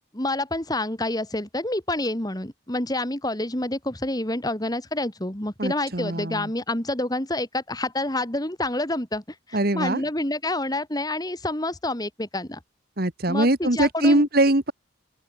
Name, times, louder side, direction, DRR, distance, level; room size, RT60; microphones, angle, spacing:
voice 1, 0.1-9.2 9.5-12.6 13.3-14.3, left 1 dB, 20° left, 2.2 m, -28 dB
voice 2, 5.6-6.5 9.5-10.0 13.0-14.7, right 1 dB, 50° right, 1.9 m, -22 dB
open air
head